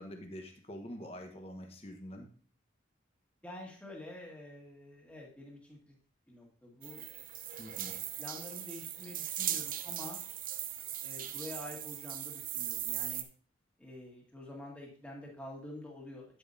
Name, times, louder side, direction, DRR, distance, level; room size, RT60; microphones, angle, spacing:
voice 1, 0.0-2.3 7.6-7.9, equal, 30° left, 3 dB, 1.2 m, -45 dB
voice 2, 3.4-6.0 6.3-7.0 8.2-10.2 11.0-13.2 13.8-16.3, left 1 dB, 5° left, -2 dB, 2.0 m, -47 dB
sound 1, 6.8-13.2, right 11 dB, 45° right, 0.6 m, -39 dB
9.7 x 8.4 x 2.8 m, 0.44 s
head